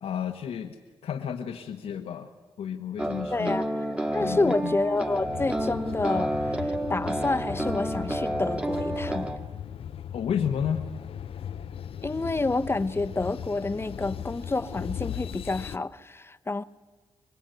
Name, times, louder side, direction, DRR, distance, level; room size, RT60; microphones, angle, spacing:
voice 1, 0.0-0.8 1.0-2.3 2.6-3.6 4.2-4.8 10.1-10.8, left 8 dB, 85° left, 1.3 m, -31 dB
sound 1, 3.0-9.4, right 1 dB, 10° right, 1.8 m, -30 dB
voice 2, 3.3-3.6 4.1-9.3 12.0-16.6, left 3 dB, 25° left, 1.0 m, -29 dB
sound 2, 5.2-15.8, left 9 dB, 70° left, 0.7 m, -38 dB
25.0 x 21.0 x 9.2 m
cardioid pair, 75°, 10 cm